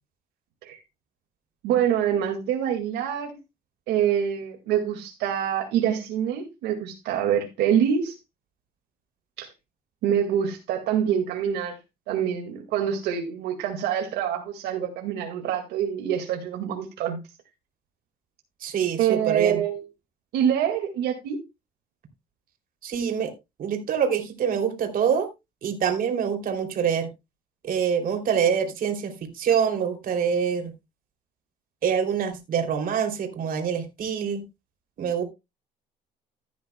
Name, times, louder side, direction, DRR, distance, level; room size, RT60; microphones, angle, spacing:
voice 1, 1.6-3.4 3.9-8.1 9.4-9.5 10.0-11.8 12.1-17.2 19.0-19.8 20.3-21.4, right 9 dB, 85° right, 2.0 m, -25 dB
voice 2, 18.6-19.6 22.8-23.3 23.6-25.3 25.6-27.1 27.6-30.7 31.8-34.4 35.0-35.2, right 7 dB, 55° right, 2.9 m, -25 dB
15.0 x 9.5 x 2.2 m
cardioid pair, 110°, 17 cm